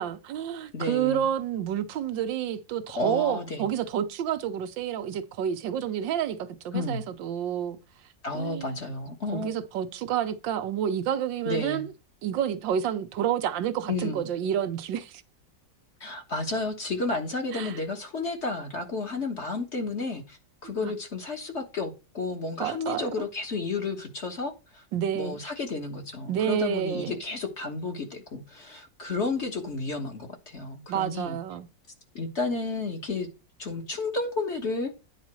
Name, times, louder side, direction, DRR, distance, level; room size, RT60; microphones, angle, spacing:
voice 1, 0.0-7.8 8.3-8.8 9.3-11.9 12.2-15.2 17.5-17.7 20.6-20.9 22.6-23.3 24.9-25.4 26.3-27.2 30.9-31.7, right 9 dB, 85° right, 1.5 m, -29 dB
voice 2, 0.7-1.3 2.9-3.6 6.7-7.0 8.2-9.6 11.4-11.8 13.9-14.2 16.0-24.8 25.1-31.4 32.1-33.3 33.6-34.9, left 3 dB, 40° left, 1.5 m, -32 dB
9.7 x 4.2 x 6.1 m
omnidirectional pair, 2.0 m